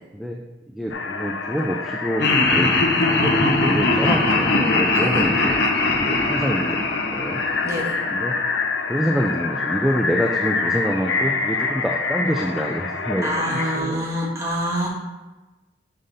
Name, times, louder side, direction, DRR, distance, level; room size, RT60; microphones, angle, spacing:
voice 1, 0.7-2.7 3.1-5.6 6.0-7.4 8.1-8.3 8.9-14.2, equal, ahead, 0 dB, 0.3 m, -26 dB
sound 1, 0.9-13.8, left 4 dB, 80° left, 0.6 m, -27 dB
Laughter, 2.2-8.4, left 2 dB, 65° left, 1.0 m, -21 dB
voice 2, 7.6-8.0 13.2-14.9, equal, 15° right, -4 dB, 1.5 m, -26 dB
5.7 x 5.0 x 4.1 m, 1.1 s
head